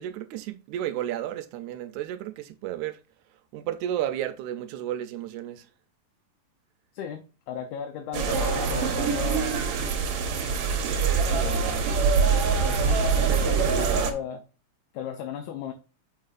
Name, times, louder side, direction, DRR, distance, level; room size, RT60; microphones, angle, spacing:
voice 1, 0.0-3.0 3.5-5.7, right 11 dB, 80° right, 1.8 m, -32 dB
voice 2, 6.9-9.6 11.3-11.9 12.5-14.5 14.9-15.7, left 8 dB, 75° left, 2.0 m, -35 dB
sound 1, 8.1-14.1, right 5 dB, 65° right, 1.6 m, -24 dB
7.1 x 5.5 x 2.4 m
omnidirectional pair, 3.8 m